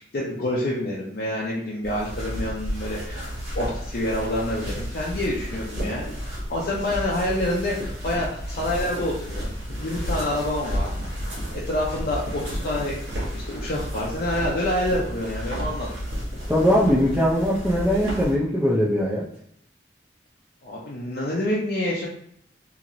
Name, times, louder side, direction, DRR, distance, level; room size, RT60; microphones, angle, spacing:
voice 1, 0.0-3.3 3.5-10.9 11.5-13.0 13.3-16.0 20.6-22.1, left 1 dB, 55° left, -5 dB, 0.5 m, -27 dB
sound 1, 1.8-18.3, equal, 80° right, 1.1 m, -32 dB
voice 2, 16.5-19.3, equal, 10° right, -8 dB, 0.4 m, -21 dB
2.9 x 2.8 x 2.5 m, 0.71 s
head